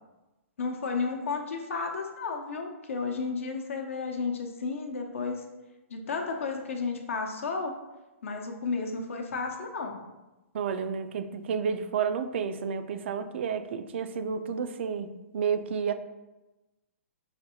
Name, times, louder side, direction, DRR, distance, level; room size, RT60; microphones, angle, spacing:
voice 1, 0.6-5.4 5.9-7.7 8.2-10.0, left 4 dB, 65° left, 3 dB, 0.7 m, -32 dB
voice 2, 10.5-15.9, right 6 dB, 55° right, 10 dB, 0.3 m, -31 dB
5.7 x 2.7 x 2.8 m, 1.1 s
figure-of-eight pair, 120°, 8 cm